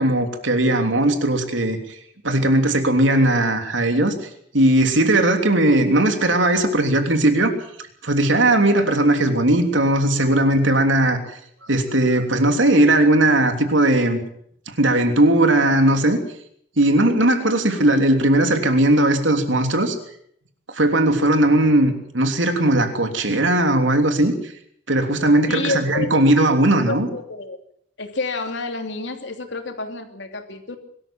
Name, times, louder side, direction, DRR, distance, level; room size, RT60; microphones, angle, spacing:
voice 1, 0.0-1.8 2.2-4.1 4.5-7.5 8.0-11.2 11.7-14.2 14.8-16.2 16.8-20.0 20.7-24.5 24.9-27.1, right 1 dB, 80° right, 6 dB, 3.2 m, -18 dB
voice 2, 25.5-26.2 26.9-27.6 28.0-30.8, left 3 dB, 70° left, 6 dB, 3.0 m, -29 dB
23.0 x 13.5 x 8.9 m, 0.67 s
head